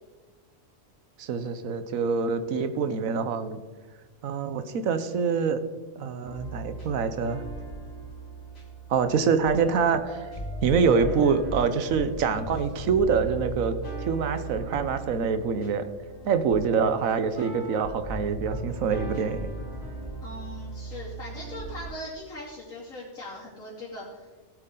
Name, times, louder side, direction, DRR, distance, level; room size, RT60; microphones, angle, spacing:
voice 1, 1.2-3.6 4.2-5.6 6.0-7.4 8.9-10.3 10.6-13.7 14.0-15.9 16.2-19.5, right 5 dB, 75° right, 10 dB, 1.3 m, -25 dB
sound 1, 6.2-21.9, right 2 dB, 45° left, 2.5 m, -38 dB
voice 2, 20.2-24.3, left 1 dB, 75° left, -9 dB, 3.4 m, -40 dB
18.5 x 8.3 x 3.9 m, 1.4 s
omnidirectional pair, 1.4 m